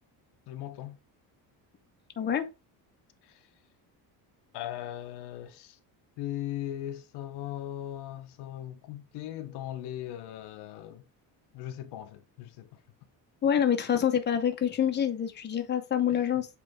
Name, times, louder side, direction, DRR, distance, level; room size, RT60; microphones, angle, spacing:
voice 1, 0.5-1.0 3.2-3.4 4.5-5.8 6.2-11.0 11.5-12.7 16.1-16.2, left 12 dB, 80° left, 1.0 m, -39 dB
voice 2, 2.2-2.5 13.4-16.5, left 9 dB, 25° left, 0.9 m, -26 dB
8.1 x 3.4 x 3.4 m
cardioid pair, 160°, 39 cm